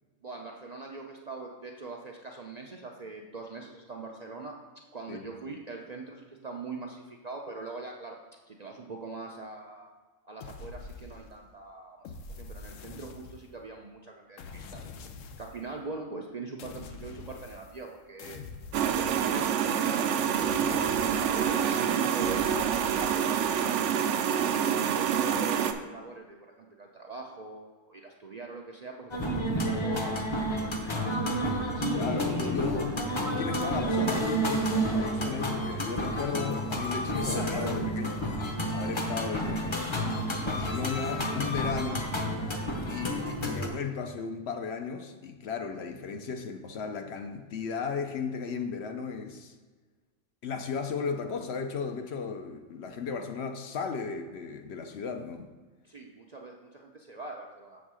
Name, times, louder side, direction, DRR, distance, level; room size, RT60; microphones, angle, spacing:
voice 1, 0.2-4.5 4.9-8.2 8.5-9.9 10.2-14.9 15.4-18.4 18.9-23.9 24.4-30.3 30.6-30.7 55.8-57.8, right 3 dB, 45° right, 0 dB, 0.5 m, -42 dB
sound 1, 10.4-11.5 12.0-13.7 14.4-15.7 16.6-17.9 18.2-19.8 20.4-21.7 22.2-23.5, left 4 dB, 90° left, 1.0 m, -45 dB
sound 2, 18.7-25.7, right 8 dB, 75° right, 0.9 m, -27 dB
sound 3, 29.1-43.7, right 1 dB, 25° left, 0.7 m, -30 dB
voice 2, 31.9-38.2 38.7-42.1 42.9-49.5 50.4-55.5, left 5 dB, 65° left, 6 dB, 0.8 m, -35 dB
7.2 x 3.6 x 6.1 m, 1.4 s
omnidirectional pair, 1.3 m